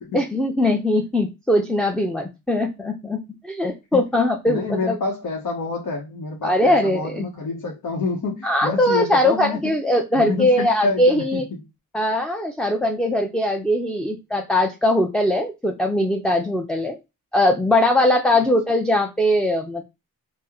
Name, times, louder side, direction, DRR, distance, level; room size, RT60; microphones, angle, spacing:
voice 1, 0.1-5.0 6.4-7.3 8.4-11.4 11.9-17.0 17.3-19.8, left 1 dB, ahead, 0.5 m, -21 dB
voice 2, 4.5-9.7 10.1-11.6 18.3-18.4, left 3 dB, 65° left, 0.8 m, -27 dB
2.8 x 2.1 x 3.5 m
cardioid pair, 55°, 35 cm